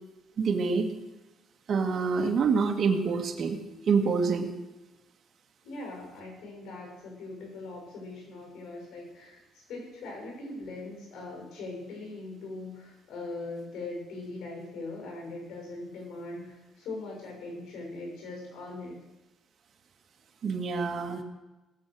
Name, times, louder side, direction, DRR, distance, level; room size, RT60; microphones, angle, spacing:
voice 1, 0.4-0.9 1.7-3.6 3.9-4.5 20.4-21.2, right 5 dB, 45° right, 3 dB, 1.7 m, -26 dB
voice 2, 5.6-19.0, left 2 dB, 85° left, 0 dB, 6.5 m, -41 dB
19.0 x 7.4 x 6.3 m, 1.1 s
cardioid pair, 155°, 0 cm